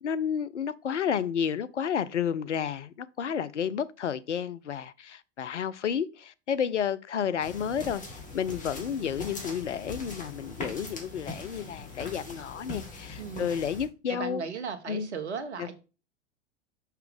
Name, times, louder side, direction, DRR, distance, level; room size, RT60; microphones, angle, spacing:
voice 1, 0.0-8.0 8.3-14.4 14.9-15.1 15.6-15.7, left 8 dB, 80° left, 0.6 m, -31 dB
sound 1, 7.4-13.9, left 3 dB, 20° left, 2.2 m, -41 dB
voice 2, 13.2-13.6 14.1-15.7, right 6 dB, 70° right, 1.3 m, -36 dB
5.8 x 5.7 x 3.6 m
figure-of-eight pair, 90°, 35 cm